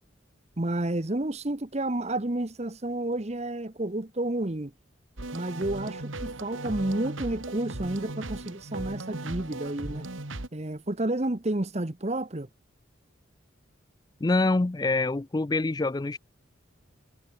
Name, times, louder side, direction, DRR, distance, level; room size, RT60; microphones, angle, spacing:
voice 1, 0.6-4.7 5.3-10.0 10.5-12.5, right 1 dB, 30° right, 1.0 m, -30 dB
sound 1, 5.2-10.5, right 2 dB, 80° right, 2.1 m, -37 dB
voice 2, 14.2-16.2, left 2 dB, 20° left, 0.4 m, -25 dB
head